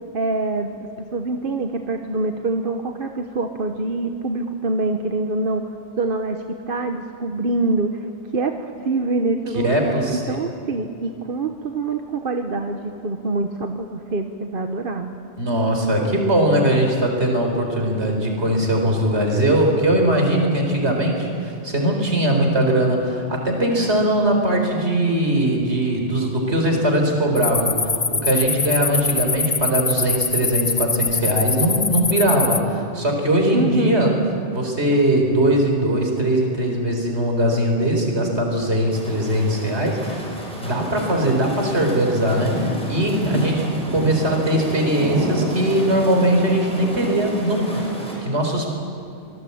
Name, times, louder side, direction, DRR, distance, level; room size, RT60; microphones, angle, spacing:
voice 1, 0.1-0.7 1.1-5.6 6.0-6.4 6.7-8.0 8.3-15.1 33.5-34.0, right 2 dB, 50° right, 5 dB, 1.2 m, -25 dB
voice 2, 9.6-10.4 15.4-34.1 34.5-40.2 40.6-48.7, right 1 dB, 70° right, 2 dB, 4.6 m, -20 dB
sound 1, 27.4-32.6, left 4 dB, 30° left, 0.6 m, -23 dB
sound 2, 38.9-48.1, right 1 dB, 5° left, 6.0 m, -30 dB
25.5 x 19.0 x 8.6 m, 2.6 s
omnidirectional pair, 1.2 m